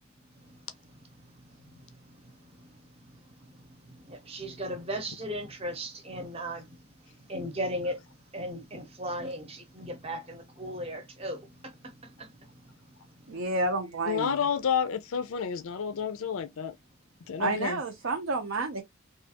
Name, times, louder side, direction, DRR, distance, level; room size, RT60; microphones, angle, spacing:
voice 1, 4.0-6.7 7.3-8.0 8.3-11.7 12.2-12.3, equal, 30° right, 0.7 m, -36 dB
voice 2, 13.3-14.4 17.4-18.8, right 2 dB, 65° right, 0.5 m, -30 dB
voice 3, 14.1-16.7 17.3-17.8, left 7 dB, 75° left, 0.4 m, -30 dB
3.3 x 2.3 x 2.8 m
head